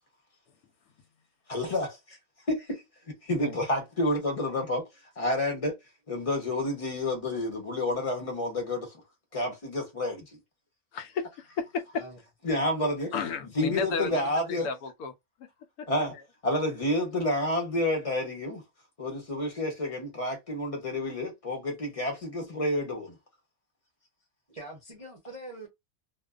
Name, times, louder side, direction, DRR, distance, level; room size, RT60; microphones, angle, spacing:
voice 1, 1.5-2.2 2.5-2.8 3.2-4.8 5.2-5.8 6.1-8.9 9.3-10.4 12.4-13.1 13.5-14.7 15.9-16.2 16.4-18.6 19.0-23.2, left 1 dB, 30° left, 0.8 m, -29 dB
voice 2, 10.9-12.0 13.1-14.2 14.6-15.1 15.4-15.5 15.8-16.1, left 5 dB, 85° left, 1.1 m, -33 dB
voice 3, 24.5-25.7, right 2 dB, 40° right, 0.5 m, -43 dB
2.5 x 2.3 x 2.3 m
omnidirectional pair, 1.5 m